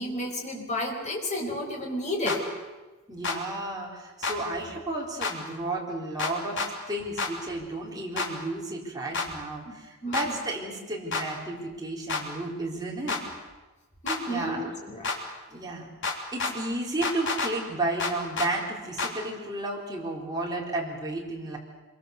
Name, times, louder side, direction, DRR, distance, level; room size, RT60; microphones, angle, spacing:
voice 1, 0.0-2.4 9.6-10.4 14.0-15.1, left 1 dB, 35° left, 1 dB, 4.7 m, -32 dB
sound 1, 2.3-2.4 3.2-3.4 4.2-4.4 5.2-5.3 6.2-6.7 7.2-7.3 8.2-8.3 9.1-9.3 10.1-10.3 11.1-11.3 12.1-12.2 13.1-13.2 14.1-14.2 15.0-15.2 16.0-16.5 17.0-17.5 18.0-18.5 19.0-19.1, left 4 dB, 60° left, 3.2 m, -29 dB
voice 2, 3.1-13.2 14.3-14.7 15.5-15.9 16.3-21.6, right 2 dB, 20° right, -3 dB, 4.4 m, -33 dB
25.5 x 23.0 x 6.8 m, 1.2 s
head